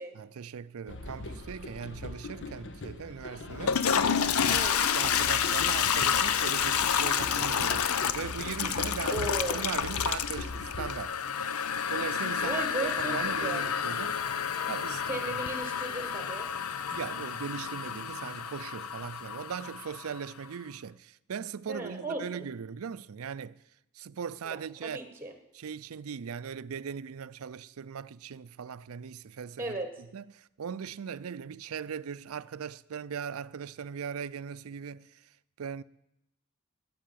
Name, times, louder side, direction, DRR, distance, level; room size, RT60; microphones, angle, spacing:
voice 1, 0.1-3.8 4.4-11.2 11.9-14.2 14.7-15.4 16.9-23.6 24.0-25.0 25.5-29.8 30.1-35.1 35.6-35.8, right 7 dB, 75° right, 0.5 m, -39 dB
sound 1, 0.9-10.9, left 2 dB, 60° left, 1.3 m, -41 dB
Toilet flush, 3.5-20.3, left 7 dB, 90° left, 0.7 m, -29 dB
voice 2, 9.1-9.7 12.4-13.7 15.1-16.5 21.7-22.4 24.4-25.3 29.6-29.9, right 2 dB, 10° right, 1.5 m, -36 dB
13.5 x 7.8 x 9.2 m
head